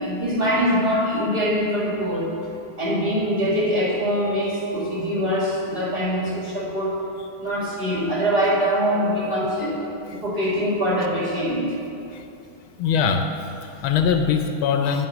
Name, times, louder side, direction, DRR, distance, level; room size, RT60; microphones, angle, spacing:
voice 1, 0.0-2.3 2.8-6.9 7.4-9.8 10.1-11.7, equal, 30° right, -6 dB, 2.0 m, -23 dB
voice 2, 12.8-13.3 13.6-15.1, left 6 dB, 75° left, 6 dB, 1.4 m, -22 dB
9.0 x 7.5 x 6.0 m, 2.7 s
omnidirectional pair, 2.3 m